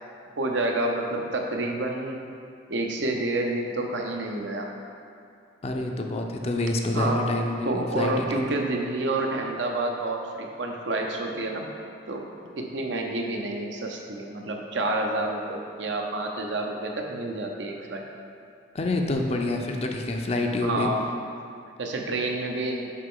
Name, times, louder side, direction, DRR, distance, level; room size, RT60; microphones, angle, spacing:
voice 1, 0.4-2.2 2.7-4.7 6.9-7.2 7.6-11.7 12.1-12.3 12.6-18.0 20.6-21.1 21.8-22.9, right 2 dB, 75° right, 1 dB, 0.7 m, -29 dB
voice 2, 5.6-8.3 18.7-20.9, left 2 dB, 35° left, 2 dB, 0.5 m, -27 dB
6.4 x 5.4 x 3.7 m, 2.5 s
head